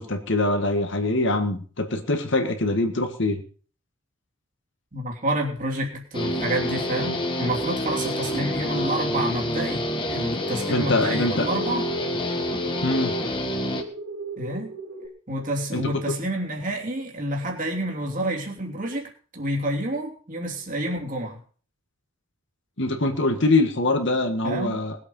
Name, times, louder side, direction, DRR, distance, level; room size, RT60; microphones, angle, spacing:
voice 1, 0.0-3.4 8.6-9.0 10.7-11.5 12.8-13.2 15.7-16.1 22.8-25.0, left 2 dB, 60° left, 6 dB, 1.8 m, -24 dB
voice 2, 4.9-11.8 12.2-12.4 14.4-14.7 15.3-21.4 24.4-24.8, right 1 dB, 40° right, -1 dB, 3.1 m, -29 dB
Guitar, 6.1-13.8, left 1 dB, 25° left, 2.0 m, -27 dB
sound 1, 10.1-15.1, right 3 dB, 75° right, 2.6 m, -39 dB
20.0 x 8.1 x 5.5 m, 0.43 s
head